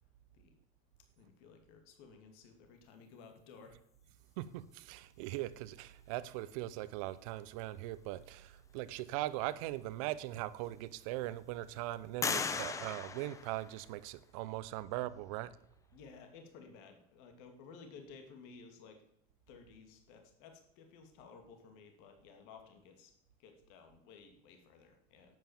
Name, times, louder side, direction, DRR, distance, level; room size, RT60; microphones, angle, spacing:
voice 1, 1.2-3.8 15.9-19.0 19.5-23.1 23.4-25.4, left 5 dB, 70° left, 2.6 m, -56 dB
voice 2, 4.4-15.6, right 16 dB, 80° right, 0.8 m, -40 dB
sound 1, 9.9-10.0 10.6-11.3 12.2-14.2, left 5 dB, 20° left, 0.8 m, -38 dB
12.0 x 9.2 x 7.3 m
cardioid pair, 150°, 17 cm